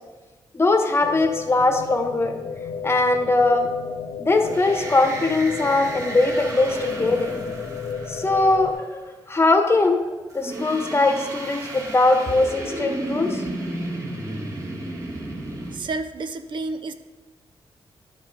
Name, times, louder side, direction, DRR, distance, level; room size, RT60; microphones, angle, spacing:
voice 1, 0.5-2.3 2.8-3.7 4.2-7.3 8.1-9.0 9.3-10.0 10.3-13.4, left 2 dB, 25° left, 5 dB, 1.1 m, -20 dB
sound 1, 1.0-8.7, left 6 dB, 70° left, 0.6 m, -32 dB
sound 2, 4.3-8.8 10.3-15.8, right 1 dB, 35° right, 1.5 m, -33 dB
voice 2, 15.7-16.9, right 3 dB, 55° right, 10 dB, 0.5 m, -30 dB
11.0 x 5.2 x 4.7 m, 1.2 s
cardioid pair, 105°, 10 cm